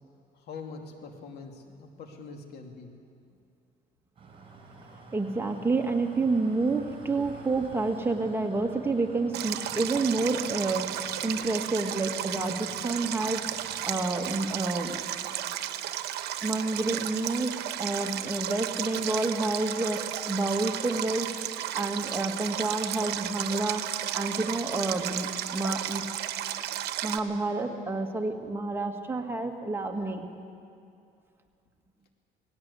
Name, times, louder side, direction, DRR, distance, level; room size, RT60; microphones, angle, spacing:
voice 1, 0.4-2.9, left 4 dB, 70° left, 3 dB, 2.6 m, -43 dB
sound 1, 4.2-14.5, right 3 dB, 30° right, 4.6 m, -49 dB
voice 2, 5.1-15.0 16.4-21.3 21.7-26.0 27.0-30.3, right 3 dB, 15° right, 3 dB, 1.8 m, -29 dB
Stream, 9.3-27.2, right 12 dB, 75° right, 1.0 m, -34 dB
19.0 x 16.5 x 8.3 m, 2.4 s
cardioid pair, 110°, 17 cm